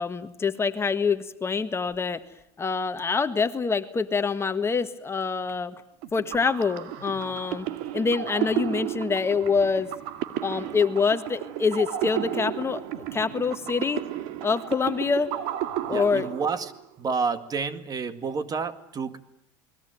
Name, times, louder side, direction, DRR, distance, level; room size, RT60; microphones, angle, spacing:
voice 1, 0.0-2.2 2.6-5.7 6.1-7.7 7.9-9.9 10.4-12.8 13.1-14.0 14.4-15.3 15.9-16.3, left 5 dB, 20° left, 10 dB, 1.6 m, -25 dB
sound 1, 6.0-16.8, right 12 dB, 75° right, 2.3 m, -33 dB
voice 2, 15.9-16.7 17.0-19.2, right 5 dB, 35° right, 12 dB, 2.0 m, -29 dB
29.5 x 21.0 x 9.3 m, 0.75 s
supercardioid pair, 105°, 11 cm